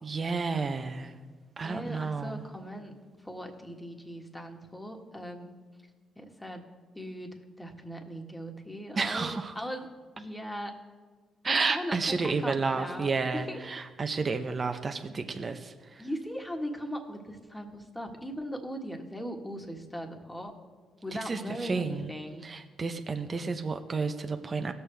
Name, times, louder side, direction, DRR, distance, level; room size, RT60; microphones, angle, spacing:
voice 1, 0.0-1.1 1.6-2.4 8.9-9.6 11.4-16.1 21.2-22.1 22.4-24.7, right 4 dB, 40° right, 6 dB, 0.7 m, -31 dB
voice 2, 1.6-5.5 6.1-6.6 6.9-9.9 10.2-10.8 11.5-12.0 12.2-13.6 16.0-20.6 21.0-22.5, equal, 10° left, 3 dB, 1.6 m, -39 dB
17.5 x 6.9 x 3.4 m, 1.4 s
supercardioid pair, 65°, 0 cm